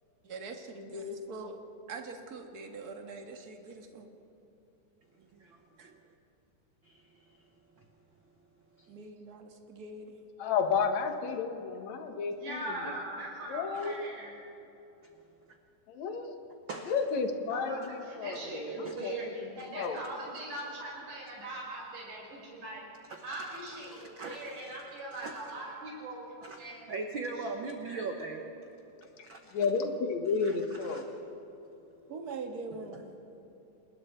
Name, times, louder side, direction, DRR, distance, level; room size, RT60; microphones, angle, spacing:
voice 1, 0.2-1.6 1.9-4.1 5.8-5.9 8.9-10.2 32.1-33.1, right 2 dB, 40° right, 4 dB, 1.4 m, -42 dB
voice 2, 5.3-5.9 6.8-7.2 7.8-7.9 8.8-9.0 13.7-14.0 15.0-15.1 16.7-16.9 18.8-18.9 23.1-24.8 25.1-25.5 26.4-28.5 29.2-29.6 30.4-31.0 32.9-33.0, right 3 dB, 85° right, 4 dB, 1.0 m, -41 dB
voice 3, 10.4-13.0 13.5-14.1 15.9-16.3 16.9-20.0 29.2-31.1, left 5 dB, 60° left, 6 dB, 2.5 m, -32 dB
voice 4, 12.4-14.3 17.5-17.8 18.2-22.8 23.2-26.3 26.6-26.9 27.9-28.0, right 1 dB, 65° right, -3 dB, 7.5 m, -40 dB
28.0 x 21.0 x 4.5 m, 3.0 s
omnidirectional pair, 4.0 m